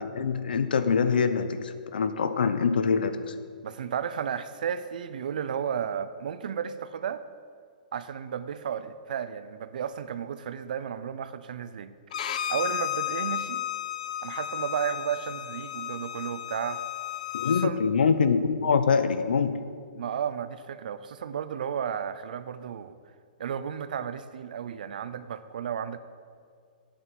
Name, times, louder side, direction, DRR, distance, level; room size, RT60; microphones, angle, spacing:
voice 1, 0.0-3.3 17.3-19.6, left 5 dB, 90° left, 11 dB, 0.9 m, -24 dB
voice 2, 3.6-7.2 7.9-11.9 12.3-13.6 14.2-16.8 17.4-17.8 19.9-23.0 23.4-26.0, right 8 dB, 65° right, 13 dB, 0.7 m, -33 dB
Bowed string instrument, 12.1-17.7, left 11 dB, 50° left, 0.5 m, -33 dB
8.6 x 7.9 x 7.8 m, 2.1 s
hypercardioid pair, 165°, 5 cm